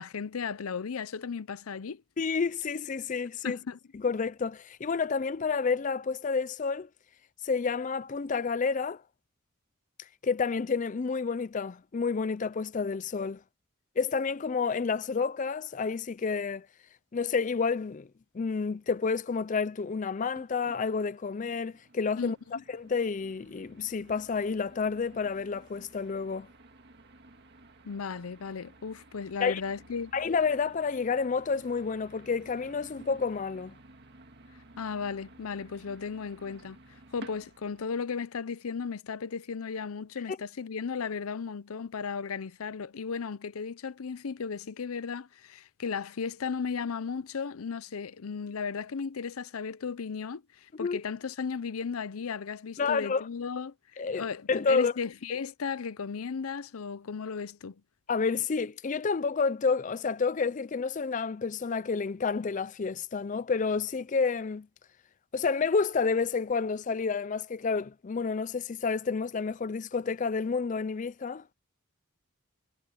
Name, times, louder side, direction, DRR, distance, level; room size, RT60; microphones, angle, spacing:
voice 1, 0.0-2.0 3.4-3.8 22.2-22.6 27.9-30.1 34.8-36.8 37.1-57.8, left 5 dB, 85° left, 0.6 m, -35 dB
voice 2, 2.2-3.6 4.0-6.9 7.4-9.0 10.2-13.4 14.0-16.7 17.1-18.1 18.3-22.4 22.7-26.5 29.4-29.6 30.1-33.8 40.3-40.4 50.8-51.0 52.8-53.3 54.0-54.9 58.1-64.7 65.3-71.4, left 5 dB, 35° left, 0.4 m, -29 dB
sound 1, 20.3-37.9, right 1 dB, 50° right, 2.0 m, -54 dB
head